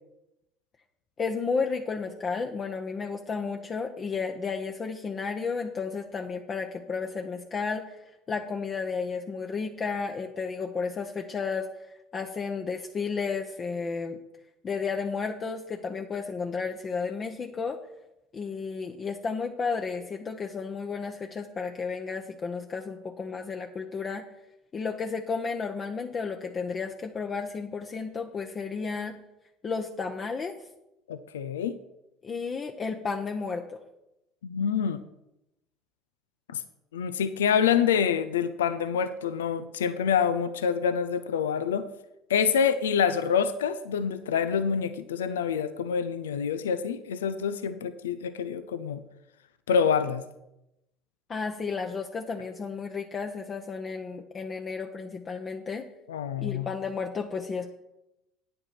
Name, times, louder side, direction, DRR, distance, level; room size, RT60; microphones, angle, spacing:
voice 1, 1.2-8.0 8.3-14.2 14.6-17.8 18.3-24.2 24.7-29.1 29.6-30.5 32.2-33.8 51.3-55.8 56.4-57.7, left 5 dB, 35° left, 3 dB, 0.9 m, -32 dB
voice 2, 31.1-31.8 34.4-35.0 36.5-36.6 36.9-41.9 42.3-49.0 49.7-50.2 56.1-56.7, left 7 dB, 85° left, 11 dB, 0.5 m, -26 dB
9.2 x 7.8 x 5.8 m, 0.89 s
hypercardioid pair, 70°, 0 cm